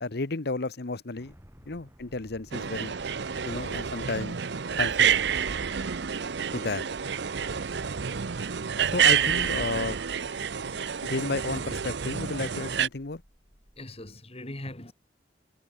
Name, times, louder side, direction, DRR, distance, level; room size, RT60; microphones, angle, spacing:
voice 1, 0.0-1.3 1.7-2.9 3.4-4.4 4.7-5.2 6.5-6.9 8.9-10.0 11.0-13.2, left 3 dB, 60° left, 1.0 m, -32 dB
sound 1, 1.2-14.2, equal, 15° right, 3.7 m, -55 dB
sound 2, 2.5-12.9, right 8 dB, 65° right, 0.7 m, -28 dB
voice 2, 10.3-11.2 13.8-14.9, left 1 dB, 35° left, 3.6 m, -42 dB
head